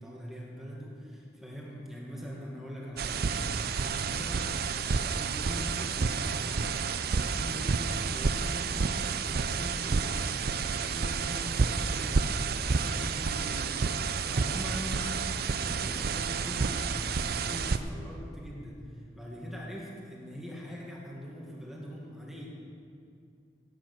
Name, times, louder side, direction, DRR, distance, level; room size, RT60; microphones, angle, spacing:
voice 1, 0.0-13.7 14.1-22.5, equal, ahead, -4 dB, 1.9 m, -42 dB
sound 1, 3.0-17.8, right 5 dB, 60° right, 0.5 m, -30 dB
16.5 x 8.8 x 6.0 m, 2.4 s
head